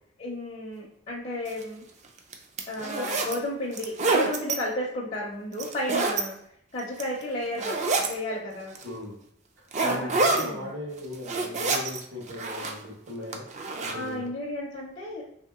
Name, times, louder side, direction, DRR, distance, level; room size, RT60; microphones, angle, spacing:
voice 1, 0.2-1.9 2.7-6.4 6.7-8.8 9.8-10.7 13.9-15.3, left 1 dB, 35° left, -4 dB, 0.5 m, -33 dB
sound 1, 1.5-1.6 2.2-3.3 3.7-4.6 5.5-6.2 6.8-7.2 7.6-8.1 8.7-8.8 9.7-10.4 11.0-12.0 12.3-12.9 13.3-13.9, right 3 dB, 35° right, 0.4 m, -27 dB
voice 2, 8.8-9.2 9.6-13.4 13.8-14.3, left 1 dB, 75° right, -4 dB, 1.3 m, -38 dB
3.2 x 2.8 x 3.5 m, 0.70 s
head